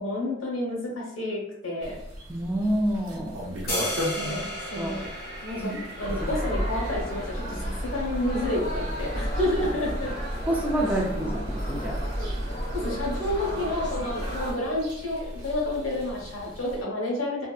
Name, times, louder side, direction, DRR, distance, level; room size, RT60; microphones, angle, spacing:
voice 1, 0.0-2.0 4.1-4.4 4.7-5.1 5.4-5.7 6.0-10.1 12.7-17.5, left 1 dB, 90° left, -2 dB, 0.9 m, -30 dB
sound 1, 1.8-16.8, equal, 85° right, 0.7 m, -40 dB
voice 2, 2.3-3.3 4.2-4.4 4.8-4.9 5.6-5.8 10.5-12.0, right 1 dB, 10° right, -2 dB, 0.4 m, -28 dB
sound 2, 3.7-9.8, left 1 dB, 50° left, 1.0 m, -37 dB
sound 3, 6.0-14.5, equal, 20° left, 0.9 m, -31 dB
2.7 x 2.2 x 2.3 m, 0.77 s
head